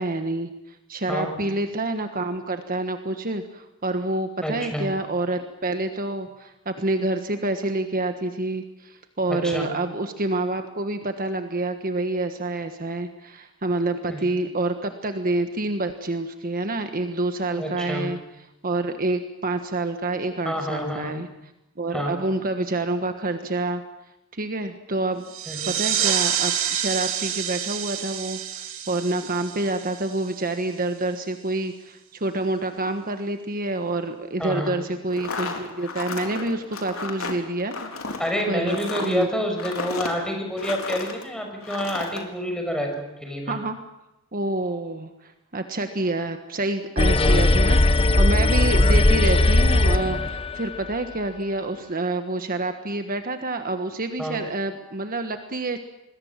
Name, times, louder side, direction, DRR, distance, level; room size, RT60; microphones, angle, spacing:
voice 1, 0.0-18.2 18.6-21.3 21.8-23.8 24.3-25.2 25.7-38.2 38.5-39.3 43.5-43.8 44.3-55.8, right 2 dB, 45° right, 7 dB, 1.4 m, -28 dB
voice 2, 4.4-4.9 9.3-9.7 14.1-14.3 17.6-18.1 20.4-21.1 21.9-22.1 25.5-25.8 34.4-34.7 38.2-43.6 47.2-47.5 54.2-54.4, equal, 5° left, 3 dB, 6.2 m, -28 dB
sound 1, 25.3-30.6, right 9 dB, 70° right, 3.0 m, -28 dB
sound 2, 35.1-41.2 41.6-42.2, left 4 dB, 85° left, 3.9 m, -33 dB
sound 3, 47.0-50.6, left 2 dB, 25° left, 1.0 m, -18 dB
26.5 x 21.5 x 7.4 m, 0.89 s
head